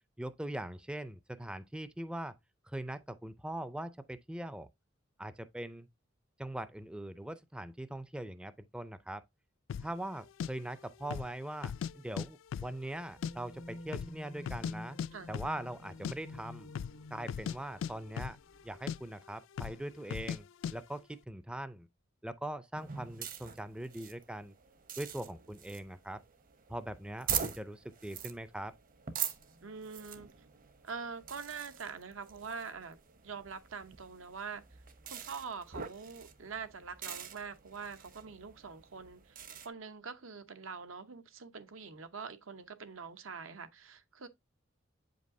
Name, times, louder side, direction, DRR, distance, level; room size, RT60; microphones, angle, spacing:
voice 1, 0.2-2.3 2.7-4.7 5.2-5.9 6.4-9.2 9.8-15.0 15.3-16.7 17.1-18.4 18.6-21.9 22.2-24.5 25.0-26.2 26.7-28.7, right 1 dB, 5° right, 0.4 m, -41 dB
sound 1, 9.7-9.9 10.4-10.5 11.0-11.3 11.6-12.3 12.5-13.3 13.6-13.7 13.9-14.7 15.0-15.1 15.3-15.6 15.9-16.2 16.7-17.0 17.3-18.6 18.9-19.0 19.6-19.8 20.1-20.4 20.6-20.8, left 7 dB, 70° left, 0.3 m, -37 dB
sound 2, 13.0-19.0, left 2 dB, 85° left, 1.2 m, -50 dB
sound 3, 22.7-39.7, right 8 dB, 45° right, 0.8 m, -44 dB
voice 2, 29.6-30.3 30.8-33.0 33.2-34.6 35.0-44.3, right 5 dB, 85° right, 0.9 m, -44 dB
7.8 x 5.2 x 2.6 m
head